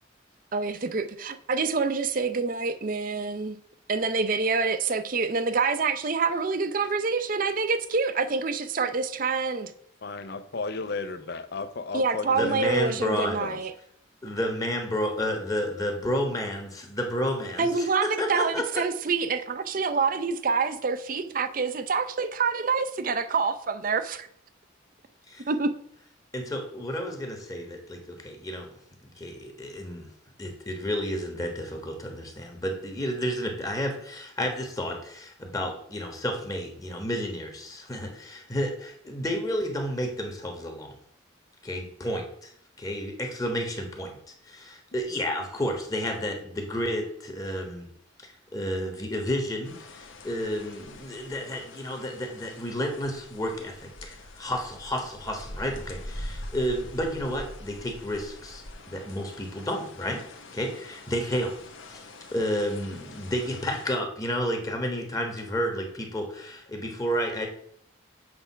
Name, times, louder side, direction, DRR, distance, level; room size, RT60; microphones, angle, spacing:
voice 1, 0.5-3.6 3.9-9.7 11.9-13.7 17.6-24.3 25.5-25.7, right 4 dB, 45° right, 0.5 m, -27 dB
voice 2, 10.0-12.8 13.4-13.6, left 3 dB, 55° left, 0.6 m, -34 dB
voice 3, 12.3-13.4 14.2-18.6 25.3-25.4 26.3-28.7 29.0-30.1 30.4-40.9 41.6-42.5 42.8-44.2 44.4-47.9 48.5-58.6 58.9-60.2 60.5-61.6 61.9-67.5, equal, 15° left, 1.2 m, -31 dB
sound 1, 49.6-64.0, left 1 dB, 75° left, 1.0 m, -44 dB
7.8 x 3.4 x 5.6 m
head